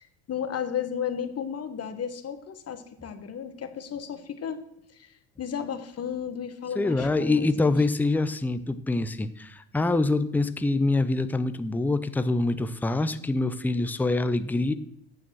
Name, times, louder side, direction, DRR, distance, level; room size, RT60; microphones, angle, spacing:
voice 1, 0.0-4.6 4.9-7.7, left 8 dB, 35° left, 10 dB, 1.2 m, -34 dB
voice 2, 6.8-14.7, left 2 dB, 5° left, 12 dB, 0.6 m, -25 dB
9.0 x 7.1 x 6.1 m, 0.77 s
supercardioid pair, 80°, 41 cm